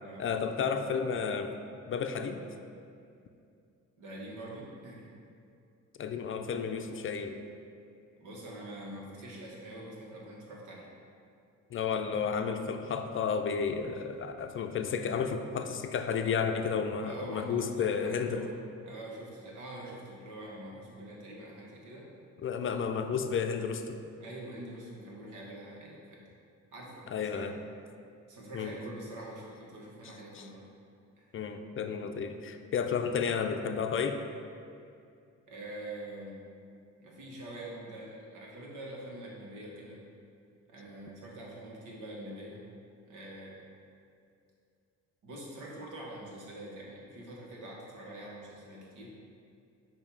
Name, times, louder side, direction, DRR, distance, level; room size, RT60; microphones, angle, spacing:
voice 1, 0.2-1.5 1.9-2.4 6.0-7.4 11.7-18.4 22.4-24.0 27.1-27.5 28.5-28.8 30.3-30.5 31.3-34.2, left 6 dB, 45° left, 6 dB, 0.5 m, -32 dB
voice 2, 4.0-5.1 8.2-10.9 17.0-22.1 24.2-26.2 26.7-27.5 28.3-30.7 35.5-36.4 37.0-40.0 40.7-42.6 43.1-43.5 45.2-49.1, right 1 dB, 80° right, -3 dB, 1.5 m, -45 dB
7.0 x 2.8 x 5.4 m, 2.4 s
cardioid pair, 90°, 30 cm